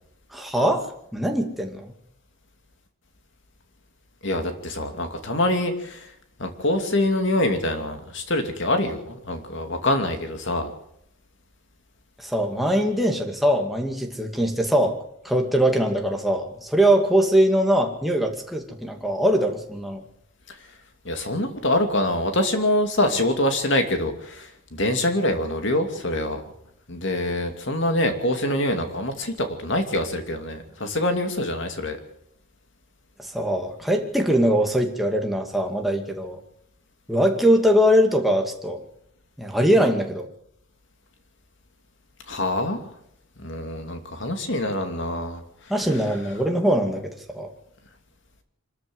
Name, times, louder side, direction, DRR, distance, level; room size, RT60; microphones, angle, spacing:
voice 1, 0.3-1.9 12.2-15.0 15.2-20.0 33.2-36.4 37.1-38.8 39.4-40.3 45.7-47.5, equal, ahead, 2 dB, 2.3 m, -22 dB
voice 2, 4.2-6.1 6.4-10.7 20.5-20.6 21.0-26.5 26.9-32.0 42.3-42.8 43.4-45.7, left 1 dB, 55° left, 6 dB, 2.7 m, -25 dB
24.5 x 13.5 x 7.9 m, 0.74 s
head